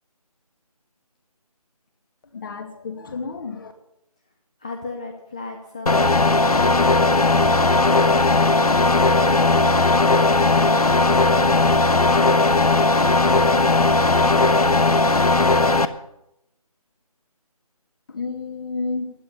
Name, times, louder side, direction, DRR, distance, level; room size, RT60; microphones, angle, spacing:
voice 1, 2.3-3.7 18.1-19.1, left 4 dB, 35° left, 7 dB, 2.4 m, -30 dB
voice 2, 4.6-6.2 8.7-11.5 12.1-14.5, left 3 dB, 10° left, 4 dB, 0.5 m, -36 dB
sound 1, 5.9-15.9, left 3 dB, 75° left, 1.3 m, -17 dB
15.5 x 11.0 x 6.8 m, 0.81 s
figure-of-eight pair, 160°, 19 cm